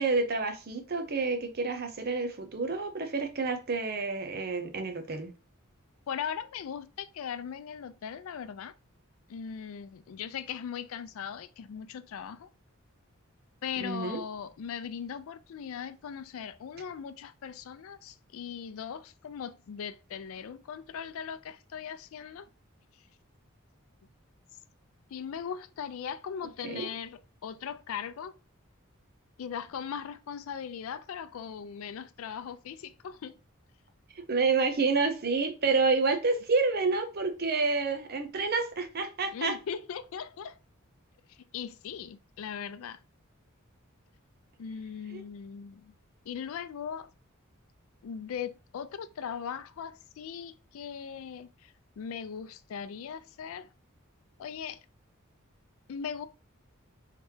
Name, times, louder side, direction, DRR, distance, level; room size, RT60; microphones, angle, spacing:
voice 1, 0.0-5.3 13.8-14.2 26.6-26.9 34.1-39.6 45.1-45.2, right 4 dB, 50° right, 0.7 m, -29 dB
voice 2, 6.1-8.7 9.3-12.5 13.6-22.5 25.1-28.4 29.4-33.4 39.3-40.6 41.3-43.0 44.6-45.9 46.3-47.1 48.0-53.7 54.4-54.8 55.9-56.3, left 7 dB, 75° left, 0.3 m, -39 dB
3.3 x 3.0 x 3.2 m
head